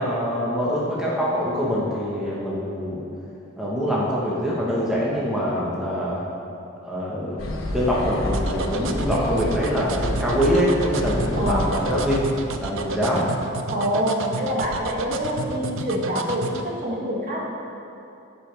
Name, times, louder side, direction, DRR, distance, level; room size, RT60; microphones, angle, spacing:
voice 1, 0.0-3.0 3.6-6.2 6.8-7.4 7.7-12.3 12.6-13.4, equal, 5° right, -7 dB, 1.2 m, -24 dB
sound 1, 7.4-12.7, left 1 dB, 65° left, 1.1 m, -29 dB
sound 2, 8.3-16.6, right 4 dB, 65° right, 0.6 m, -31 dB
voice 2, 11.4-11.7 13.7-17.5, equal, 40° right, -3 dB, 1.6 m, -26 dB
15.5 x 5.4 x 4.6 m, 2.8 s
head